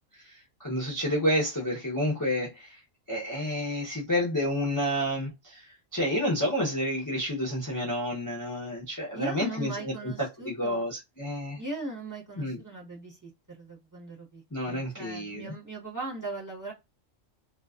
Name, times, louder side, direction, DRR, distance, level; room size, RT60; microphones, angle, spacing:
voice 1, 0.6-2.8 3.1-10.1 10.4-11.6 12.4-12.6 14.5-15.5, equal, 25° left, 0.4 m, -30 dB
voice 2, 9.1-10.9 11.6-16.7, right 2 dB, 20° right, 0.6 m, -39 dB
2.4 x 2.3 x 2.3 m
omnidirectional pair, 1.3 m